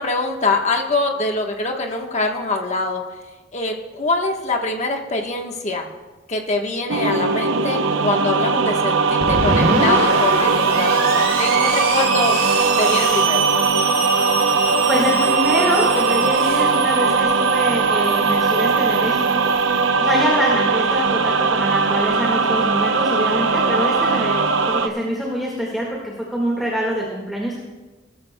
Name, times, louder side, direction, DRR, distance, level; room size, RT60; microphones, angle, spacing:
voice 1, 0.0-3.0 3.5-5.9 6.3-12.3 12.8-13.5, left 3 dB, 35° left, 3 dB, 1.2 m, -24 dB
sound 1, 6.9-24.9, right 4 dB, 85° right, 0.7 m, -19 dB
Screech, 9.2-19.7, right 3 dB, 55° right, 2.8 m, -25 dB
voice 2, 14.1-14.5 14.9-27.6, equal, ahead, -4 dB, 1.7 m, -25 dB
19.0 x 13.5 x 2.2 m, 1.2 s
head